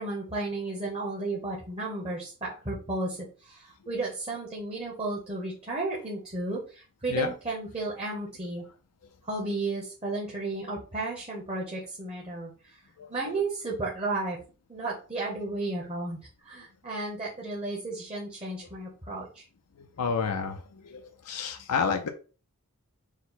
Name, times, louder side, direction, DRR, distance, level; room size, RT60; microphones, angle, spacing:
voice 1, 0.0-8.6 9.2-12.8 13.1-14.4 14.7-19.4, right 2 dB, 25° right, -3 dB, 0.9 m, -33 dB
voice 2, 20.0-22.1, left 5 dB, 90° left, 6 dB, 0.5 m, -30 dB
4.5 x 2.1 x 3.9 m, 0.36 s
head